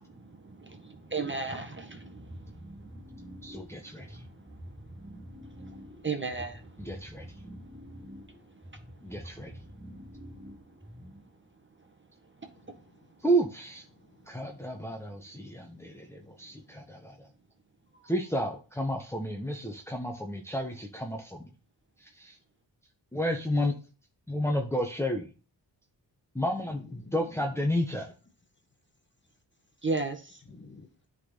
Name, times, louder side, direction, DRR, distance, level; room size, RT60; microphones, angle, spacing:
voice 1, 0.0-9.3 9.6-10.1 11.9-12.0 12.4-12.8 18.0-18.1 29.8-30.4, right 4 dB, 25° right, 1.6 m, -39 dB
sound 1, 2.2-11.4, equal, 10° right, 1.8 m, -47 dB
voice 2, 3.4-4.2 6.8-7.3 9.0-9.6 13.2-13.8 14.3-17.3 18.0-21.5 22.0-22.4 23.1-23.7 24.3-25.3 26.3-28.1, equal, 5° left, 1.2 m, -31 dB
voice 3, 12.5-13.1 13.9-16.8 26.6-27.7 30.5-31.1, left 3 dB, 25° left, 1.4 m, -54 dB
9.5 x 4.2 x 4.0 m
supercardioid pair, 40°, 46 cm